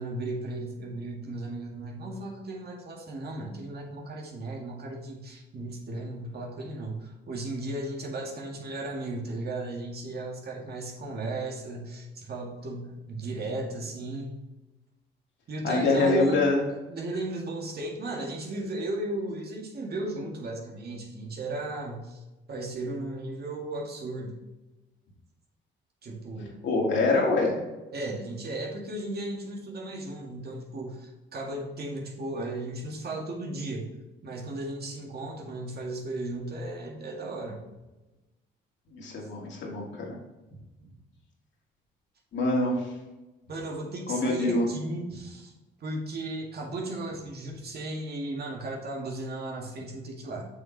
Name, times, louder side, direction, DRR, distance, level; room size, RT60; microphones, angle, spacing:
voice 1, 0.0-14.4 15.5-16.4 16.9-24.4 26.0-26.6 27.9-33.9 34.2-37.6 43.5-45.5 45.8-50.4, right 2 dB, 55° right, -1 dB, 1.9 m, -35 dB
voice 2, 15.6-16.6 26.6-27.6 38.9-40.2 42.3-42.8 44.1-44.6, left 2 dB, 70° left, -2 dB, 2.4 m, -25 dB
7.0 x 6.3 x 3.3 m, 1.1 s
cardioid pair, 90°, 20 cm